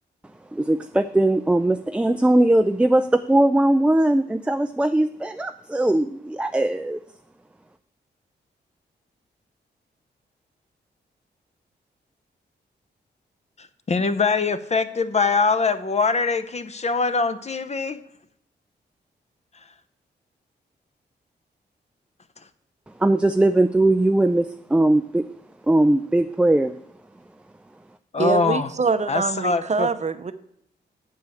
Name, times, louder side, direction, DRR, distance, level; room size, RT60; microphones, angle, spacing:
voice 1, 0.5-7.0 23.0-25.3 25.7-26.8, right 1 dB, 5° right, 9 dB, 0.3 m, -20 dB
voice 2, 13.9-18.0 28.1-28.7 29.1-29.9, left 4 dB, 35° left, 11 dB, 0.7 m, -23 dB
voice 3, 28.2-30.3, right 5 dB, 40° right, 12 dB, 0.6 m, -24 dB
7.8 x 4.9 x 7.0 m, 0.72 s
cardioid pair, 65°, 18 cm